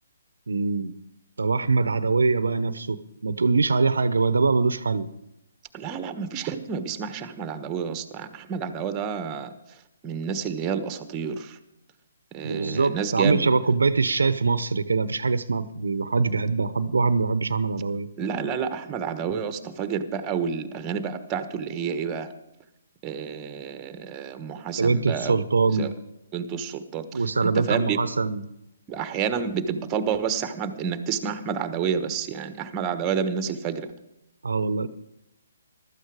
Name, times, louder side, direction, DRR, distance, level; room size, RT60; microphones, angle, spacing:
voice 1, 0.5-0.9 1.4-3.0 3.2-5.1 12.4-18.1 24.8-25.9 27.1-28.4 34.4-34.9, right 4 dB, 80° right, 15 dB, 0.8 m, -23 dB
voice 2, 5.7-9.5 10.0-11.6 12.3-13.5 18.2-22.3 23.0-25.4 25.8-25.9 26.3-28.0 28.9-33.9, right 7 dB, 20° right, 11 dB, 1.2 m, -29 dB
15.0 x 12.5 x 4.9 m, 0.89 s
hypercardioid pair, 145°, 0 cm